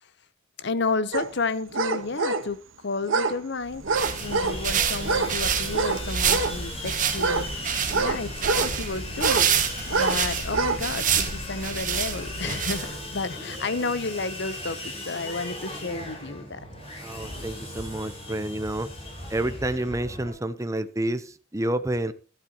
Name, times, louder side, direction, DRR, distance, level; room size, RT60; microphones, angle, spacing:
voice 1, 0.6-3.8 4.2-7.5 7.9-9.7 9.9-16.7, left 3 dB, 60° left, 0.9 m, -31 dB
sound 1, 1.1-1.3 1.7-2.5 3.0-3.4 3.8-4.6 5.0-5.4 5.7-6.6 7.1-8.7 9.2-9.5 9.9-10.2 10.5-10.8 11.2-11.3, right 4 dB, 85° right, 1.3 m, -26 dB
sound 2, 3.7-13.2, right 7 dB, 40° right, 1.9 m, -28 dB
Sawing, 3.9-20.3, left 1 dB, 30° left, 5.5 m, -38 dB
voice 2, 17.0-18.9 19.3-22.1, right 1 dB, 15° right, 0.8 m, -29 dB
13.5 x 12.0 x 3.0 m
head